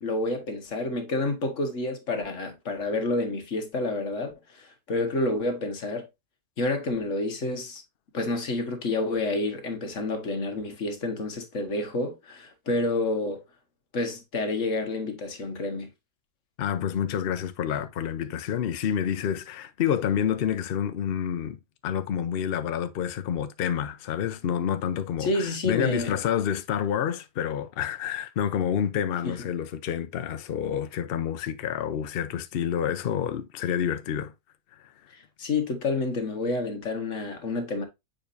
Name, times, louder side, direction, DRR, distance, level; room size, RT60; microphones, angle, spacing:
voice 1, 0.0-6.1 6.6-7.8 8.1-13.4 13.9-15.9 25.2-26.1 29.2-29.3 35.1-37.8, left 2 dB, 50° left, 1.7 m, -29 dB
voice 2, 16.6-21.6 21.8-34.3, left 9 dB, 85° left, 0.5 m, -28 dB
7.0 x 5.1 x 2.6 m
omnidirectional pair, 1.8 m